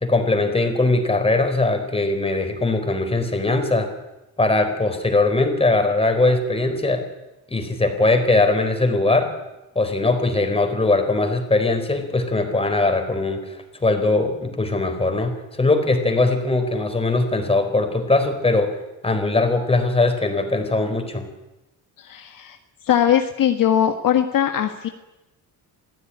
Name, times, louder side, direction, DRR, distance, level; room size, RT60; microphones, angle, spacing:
voice 1, 0.0-3.9 4.4-7.0 7.5-9.3 9.7-18.8 19.0-21.3, left 2 dB, 15° left, 6 dB, 4.2 m, -20 dB
voice 2, 22.0-22.6 22.9-24.9, left 10 dB, 55° left, 6 dB, 1.7 m, -20 dB
25.5 x 15.5 x 10.0 m, 1.0 s
cardioid pair, 125°, 39 cm